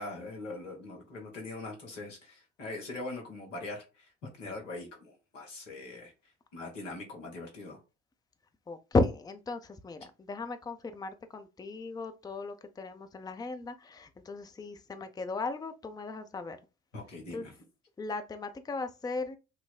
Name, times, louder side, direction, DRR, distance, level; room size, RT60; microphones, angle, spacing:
voice 1, 0.0-4.1 4.4-6.1 6.5-7.8 16.9-17.5, left 2 dB, 90° left, 1.1 m, -42 dB
voice 2, 8.7-16.6 17.3-17.5 18.0-19.4, left 3 dB, 10° left, 0.5 m, -35 dB
5.5 x 2.0 x 2.3 m
hypercardioid pair, 50°, 37 cm